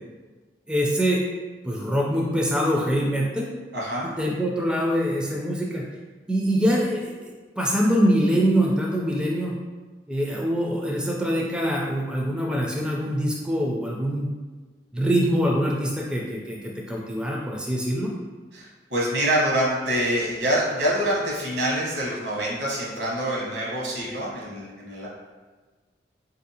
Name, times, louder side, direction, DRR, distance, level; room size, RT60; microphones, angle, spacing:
voice 1, 0.7-1.2 1.6-3.5 4.2-5.8 6.3-7.3 7.6-9.5 10.1-14.3 14.9-18.1, equal, 5° right, -3 dB, 0.3 m, -24 dB
voice 2, 3.7-4.0 18.5-25.1, right 1 dB, 75° right, -4 dB, 1.0 m, -26 dB
4.0 x 2.6 x 2.7 m, 1.3 s
head